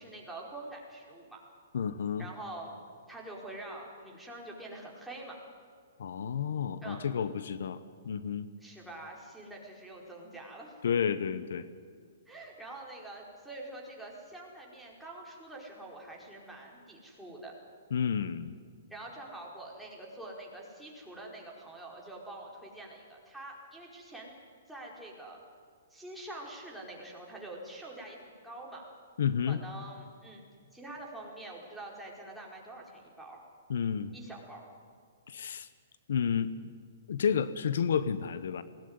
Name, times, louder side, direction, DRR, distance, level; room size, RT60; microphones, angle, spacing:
voice 1, 0.0-1.4 2.2-2.7 3.1-5.4 6.8-7.0 8.6-10.8 12.3-17.5 18.9-24.4 24.7-25.4 25.9-28.8 29.5-30.4 30.7-33.4 34.1-34.7, right 2 dB, ahead, -3 dB, 4.6 m, -45 dB
voice 2, 1.7-2.3 6.0-8.5 10.8-11.7 17.9-18.5 29.2-29.6 33.7-34.1 35.3-35.7 36.1-36.7 37.1-38.6, left 7 dB, 75° left, 14 dB, 1.0 m, -31 dB
21.0 x 18.0 x 9.7 m, 2.1 s
hypercardioid pair, 140°, 0 cm